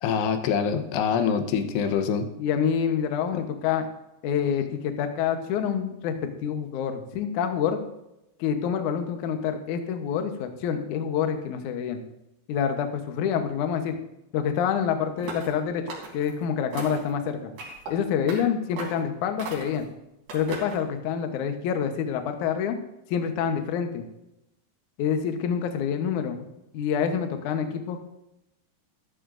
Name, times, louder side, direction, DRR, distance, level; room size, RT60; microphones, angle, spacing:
voice 1, 0.0-2.3 3.3-3.4, left 7 dB, 90° left, 8 dB, 3.1 m, -25 dB
voice 2, 2.4-3.9 4.2-7.8 8.4-12.0 12.5-14.0 14.3-17.5 17.9-19.9 20.3-22.8 23.1-24.0 25.0-26.5 26.7-28.0, left 7 dB, 70° left, 6 dB, 1.9 m, -27 dB
sound 1, 15.2-15.6 15.9-16.3 16.7-17.1 17.6-17.9 18.3-18.4 18.8-19.0 19.4-19.8 20.3-20.8, right 3 dB, 70° right, 5.2 m, -37 dB
14.0 x 13.0 x 2.6 m, 0.89 s
omnidirectional pair, 4.8 m